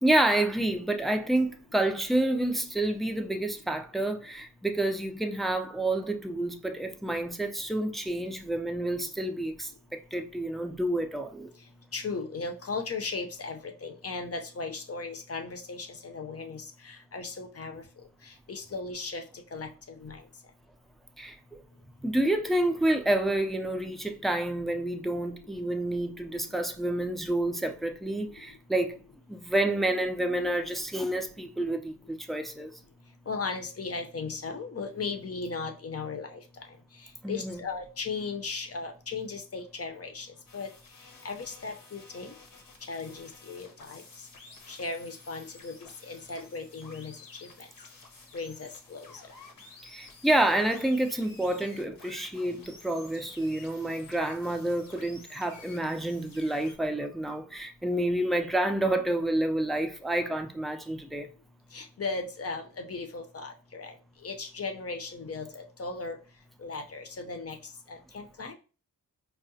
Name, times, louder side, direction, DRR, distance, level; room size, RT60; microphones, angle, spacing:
voice 1, 0.0-11.5 21.2-21.4 22.0-29.0 29.3-32.7 37.2-37.6 49.8-61.3, right 1 dB, ahead, 0.4 m, -29 dB
voice 2, 11.9-16.6 17.1-17.8 18.5-19.2 19.5-19.7 20.0-20.2 33.3-36.4 37.3-40.3 40.5-40.7 41.2-42.3 42.9-44.0 44.7-45.7 46.1-47.1 48.3-49.0 61.7-63.9 64.2-66.2 66.6-67.6 67.9-68.5, left 4 dB, 45° left, 0.6 m, -36 dB
sound 1, 40.5-56.7, left 3 dB, 75° left, 0.9 m, -52 dB
4.6 x 2.1 x 2.7 m
wide cardioid pair, 90°, 34 cm